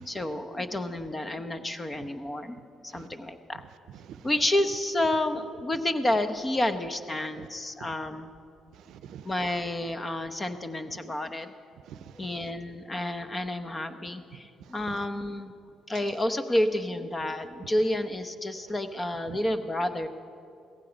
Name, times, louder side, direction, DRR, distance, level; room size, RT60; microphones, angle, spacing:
voice 1, 0.0-2.6 2.8-3.6 4.2-8.3 9.2-11.5 12.2-15.5 15.9-20.1, left 1 dB, 25° left, 9 dB, 0.9 m, -30 dB
voice 2, 3.9-4.3 7.8-7.9 8.7-9.3 11.8-12.5 14.6-15.0 19.3-19.4, right 9 dB, 75° right, 14 dB, 0.5 m, -46 dB
16.5 x 14.5 x 5.2 m, 2.5 s
cardioid pair, 85°, 0 cm